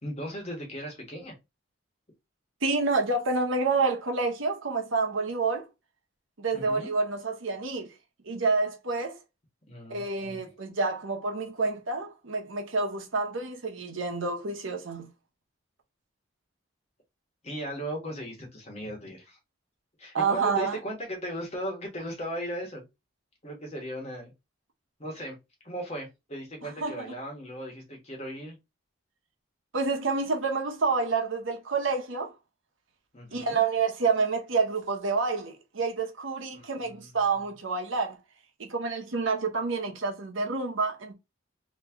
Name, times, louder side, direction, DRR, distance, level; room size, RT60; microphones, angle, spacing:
voice 1, 0.0-1.3 6.5-6.9 9.7-10.4 17.4-19.4 20.0-22.9 23.4-24.3 25.0-25.4 25.6-28.6 33.1-33.6 36.5-37.2, equal, 30° left, 1.4 m, -37 dB
voice 2, 2.6-5.7 6.4-7.9 8.2-9.2 9.9-15.1 20.1-20.8 26.8-27.0 29.7-32.3 33.3-38.2 38.6-41.1, right 4 dB, 70° right, 1.0 m, -28 dB
3.1 x 3.0 x 3.5 m
head